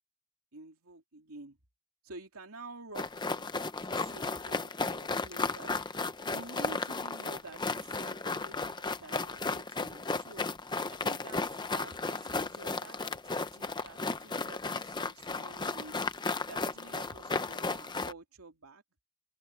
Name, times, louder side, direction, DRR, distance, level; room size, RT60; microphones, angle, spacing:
voice 1, 0.5-1.6 2.0-3.5 3.9-5.8 6.3-10.5 10.9-11.4 11.7-16.0 16.4-18.8, right 3 dB, 85° right, 2.8 m, -49 dB
sound 1, 2.9-18.1, left 3 dB, 20° left, 0.8 m, -34 dB
head